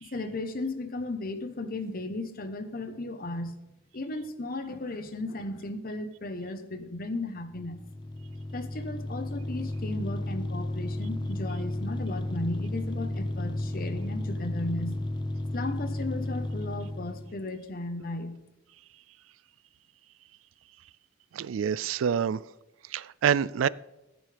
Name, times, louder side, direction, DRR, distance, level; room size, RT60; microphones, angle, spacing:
voice 1, 0.0-3.6 3.9-7.8 8.5-15.0 15.5-18.4, left 2 dB, 50° left, 1.0 m, -35 dB
sound 1, 7.5-17.4, left 1 dB, 25° left, 0.5 m, -33 dB
voice 2, 21.3-22.4 22.9-23.7, right 8 dB, 85° right, 0.3 m, -26 dB
14.5 x 9.1 x 3.4 m
head